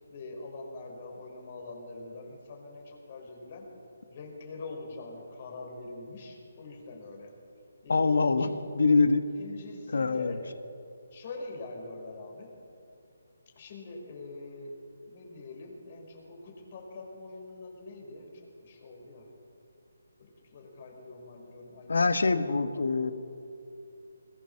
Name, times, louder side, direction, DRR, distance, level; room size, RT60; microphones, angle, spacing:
voice 1, 0.1-3.7 4.1-7.3 7.8-8.6 9.3-10.5 11.1-12.6 13.6-14.8 15.0-18.3 18.6-19.3 20.2-23.1, left 3 dB, 40° left, 1 dB, 5.4 m, -44 dB
voice 2, 7.9-8.5 8.7-9.2 9.9-10.3 21.9-23.1, left 4 dB, 75° left, 10 dB, 1.7 m, -24 dB
21.5 x 21.5 x 7.3 m, 2.6 s
hypercardioid pair, 160°, 0 cm